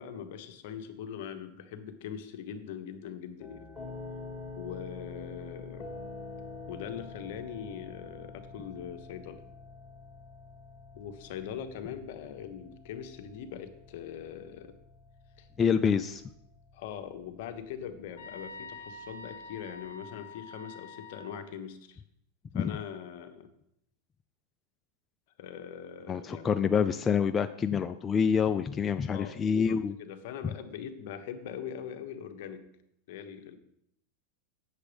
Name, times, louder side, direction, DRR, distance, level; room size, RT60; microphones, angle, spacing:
voice 1, 0.0-3.7 4.6-5.9 6.7-9.4 10.9-14.7 15.4-15.5 16.7-22.0 22.5-23.5 25.4-26.5 29.1-32.6 33.1-33.6, left 8 dB, 65° left, 7 dB, 1.1 m, -42 dB
sound 1, 3.4-19.9, left 3 dB, ahead, 2.4 m, -47 dB
voice 2, 15.6-16.2 22.5-22.7 26.1-29.9 30.4-30.5, left 6 dB, 20° left, 8 dB, 0.4 m, -27 dB
sound 2, 18.2-21.4, left 3 dB, 85° left, 1.0 m, -46 dB
8.2 x 7.0 x 5.1 m, 0.76 s
supercardioid pair, 125°, 0 cm